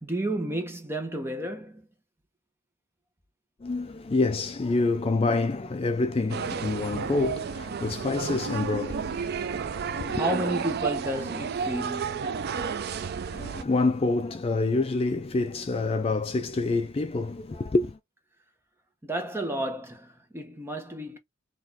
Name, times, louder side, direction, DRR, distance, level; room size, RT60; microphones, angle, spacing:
voice 1, 0.0-1.9 9.8-12.4 19.0-21.2, right 1 dB, 10° right, 0.9 m, -32 dB
voice 2, 3.6-9.2 9.7-10.2 13.3-18.0, left 3 dB, 25° left, 0.3 m, -27 dB
sound 1, 6.3-13.6, right 6 dB, 45° right, 0.4 m, -31 dB
4.0 x 2.5 x 4.1 m
head